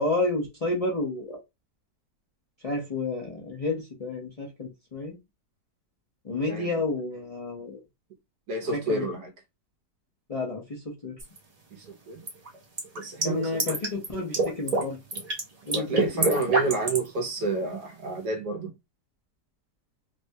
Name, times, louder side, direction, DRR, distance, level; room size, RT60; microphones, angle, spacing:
voice 1, 0.0-1.4 2.6-5.2 6.2-7.8 8.6-9.1 10.3-11.2 13.2-15.0 15.6-16.4, left 2 dB, 65° left, 0.3 m, -31 dB
voice 2, 8.5-9.3 11.7-12.2 12.9-13.8 15.7-18.7, right 3 dB, 70° right, 1.3 m, -30 dB
sound 1, 11.2-11.4 12.3-14.1 14.3-14.8 15.1-15.4 15.7-17.1, right 2 dB, 50° right, 0.4 m, -26 dB
3.4 x 2.2 x 2.6 m
omnidirectional pair, 1.9 m